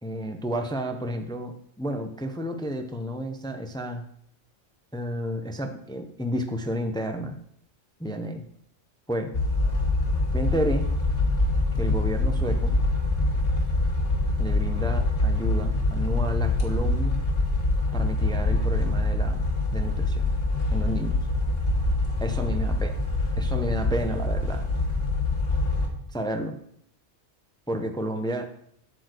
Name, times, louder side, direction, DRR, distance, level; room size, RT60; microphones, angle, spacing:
voice 1, 0.0-4.0 4.9-7.4 8.0-8.4 9.1-9.3 10.3-10.9 11.8-12.8 14.4-17.2 17.9-19.4 19.7-20.3 20.7-21.2 22.2-22.9 23.4-24.7 26.1-26.6 27.7-28.5, equal, 5° left, 6 dB, 0.3 m, -31 dB
sound 1, 9.3-25.9, left 2 dB, 50° left, 1.6 m, -25 dB
8.1 x 4.5 x 6.4 m, 0.68 s
omnidirectional pair, 1.3 m